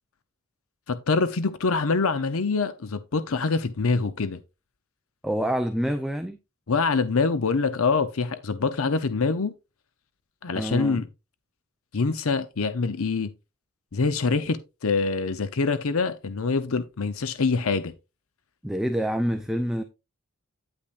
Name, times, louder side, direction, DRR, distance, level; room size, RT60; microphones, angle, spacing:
voice 1, 0.9-4.4 6.7-9.5 10.4-11.1 11.9-13.3 13.9-17.9, left 4 dB, 75° left, 0.7 m, -25 dB
voice 2, 5.2-6.4 10.5-11.0 18.6-19.8, equal, ahead, 0.6 m, -27 dB
9.9 x 8.7 x 2.5 m
head